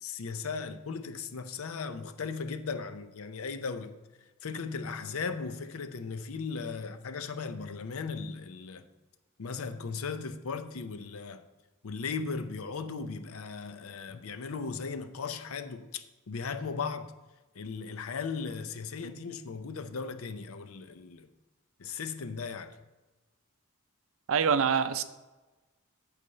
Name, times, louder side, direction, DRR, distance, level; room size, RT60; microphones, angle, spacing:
voice 1, 0.0-4.0 4.4-8.9 9.4-11.4 11.8-17.1 17.5-21.3 21.8-22.8, left 5 dB, 70° left, 0.6 m, -37 dB
voice 2, 24.3-25.0, right 6 dB, 65° right, 0.5 m, -25 dB
8.3 x 4.2 x 6.6 m
head